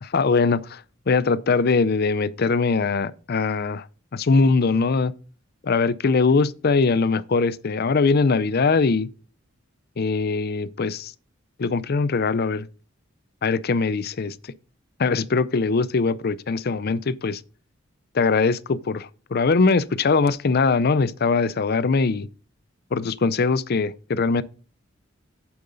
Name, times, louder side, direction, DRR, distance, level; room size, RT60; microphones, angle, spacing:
voice 1, 0.0-3.9 4.1-5.1 5.6-9.1 10.0-11.1 11.6-12.7 13.4-14.4 15.0-17.4 18.1-22.3 22.9-24.4, left 4 dB, 50° left, 0.5 m, -21 dB
8.7 x 7.7 x 3.9 m
head